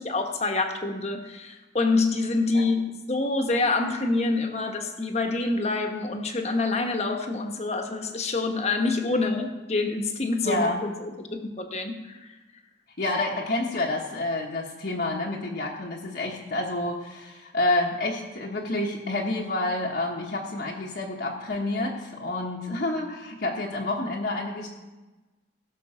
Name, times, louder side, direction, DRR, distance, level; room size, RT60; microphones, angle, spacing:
voice 1, 0.0-12.2, left 3 dB, 35° left, 5 dB, 1.1 m, -26 dB
voice 2, 10.4-10.8 13.0-24.7, left 2 dB, 55° left, -2 dB, 1.2 m, -28 dB
17.0 x 6.8 x 5.0 m, 1.2 s
head